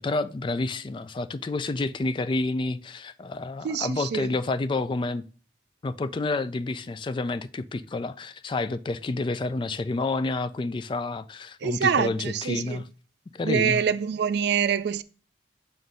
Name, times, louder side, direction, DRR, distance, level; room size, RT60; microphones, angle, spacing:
voice 1, 0.0-5.2 5.8-12.8 13.3-13.8, left 3 dB, 25° left, 0.3 m, -29 dB
voice 2, 3.6-4.3 11.6-12.8 13.4-15.0, right 7 dB, 60° right, 0.3 m, -25 dB
7.7 x 2.6 x 5.3 m
head